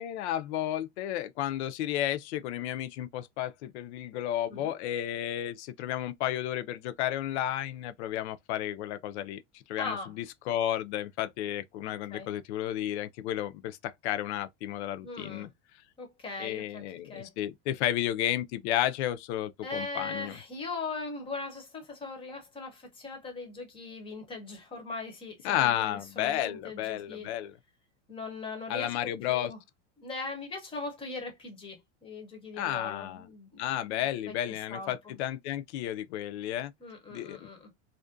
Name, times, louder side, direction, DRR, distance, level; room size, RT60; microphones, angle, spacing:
voice 1, 0.0-15.5 16.4-20.4 25.4-27.6 28.7-29.5 32.6-33.3 33.6-36.7 37.1-37.5, left 12 dB, 70° left, 0.5 m, -32 dB
voice 2, 9.8-10.1 11.8-12.3 15.0-15.5 16.0-16.8 17.1-17.3 19.6-27.3 28.1-28.9 29.2-29.6 30.0-33.6 33.9-34.3 34.7-34.9 36.8-37.7, left 3 dB, 15° left, 0.6 m, -40 dB
2.5 x 2.1 x 2.4 m
supercardioid pair, 155°, 35 cm